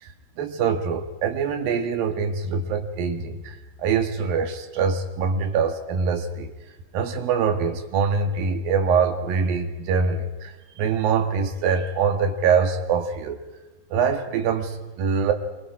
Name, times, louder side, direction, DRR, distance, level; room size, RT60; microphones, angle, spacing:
voice 1, 0.0-6.5 6.9-13.4 13.9-15.3, right 5 dB, 60° right, 5 dB, 3.3 m, -24 dB
28.0 x 23.5 x 4.9 m, 1.1 s
omnidirectional pair, 5.0 m